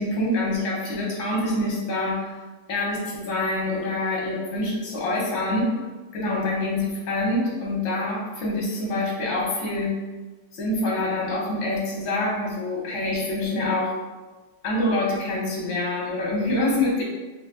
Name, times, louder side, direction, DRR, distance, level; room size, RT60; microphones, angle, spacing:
voice 1, 0.0-2.3 2.7-5.7 6.1-10.0 10.5-13.9 14.6-17.0, left 2 dB, 85° left, -3 dB, 1.8 m, -26 dB
4.6 x 2.6 x 2.5 m, 1.3 s
omnidirectional pair, 2.1 m